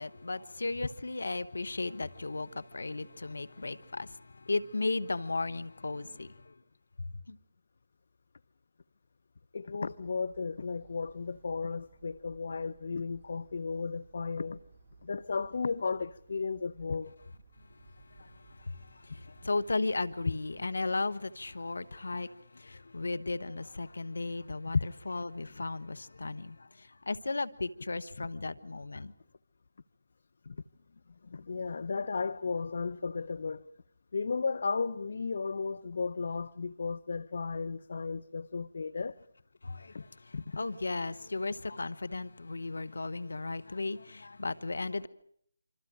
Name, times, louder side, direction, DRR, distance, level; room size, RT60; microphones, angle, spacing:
voice 1, 0.0-6.5 7.3-7.4 17.9-29.1 39.6-45.1, left 3 dB, 75° left, 1.5 m, -36 dB
voice 2, 9.5-14.6 15.0-17.1 24.7-24.8 30.5-30.6 31.2-33.7 34.1-39.2 39.9-40.0 40.3-40.4, left 4 dB, 60° left, 0.9 m, -34 dB
sound 1, 9.8-20.6, right 4 dB, 20° right, 5.2 m, -59 dB
26.5 x 26.0 x 6.4 m
figure-of-eight pair, 155°, 0 cm